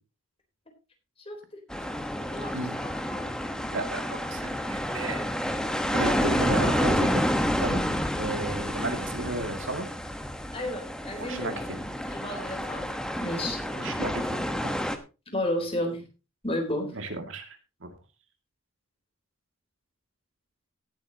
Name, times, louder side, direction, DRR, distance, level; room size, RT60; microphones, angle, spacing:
voice 1, 1.3-1.6 2.2-2.6 3.1-3.7 10.5-11.6 12.1-12.8 13.2-13.6 15.3-16.0 16.4-16.9, left 1 dB, 25° left, 4 dB, 3.8 m, -32 dB
sound 1, 1.7-15.0, equal, 5° left, 1.1 m, -29 dB
voice 2, 3.7-5.2 5.9-7.2 7.6-7.8 8.2-9.9 11.2-11.8 13.7-14.7 16.9-17.9, right 2 dB, 65° right, 6 dB, 2.3 m, -33 dB
18.0 x 8.8 x 2.9 m, 0.30 s
head